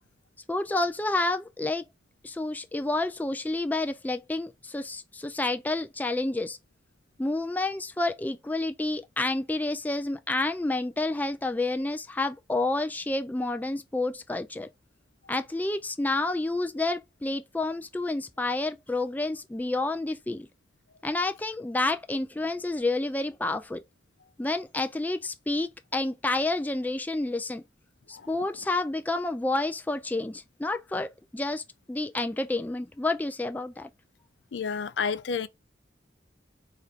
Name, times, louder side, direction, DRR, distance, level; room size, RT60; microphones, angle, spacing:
voice 1, 0.5-1.8 2.2-6.6 7.2-14.7 15.3-20.5 21.0-23.8 24.4-27.6 28.1-33.9, left 2 dB, 10° left, 0.3 m, -29 dB
voice 2, 34.5-35.5, left 6 dB, 85° left, 0.4 m, -30 dB
4.4 x 2.5 x 2.4 m
head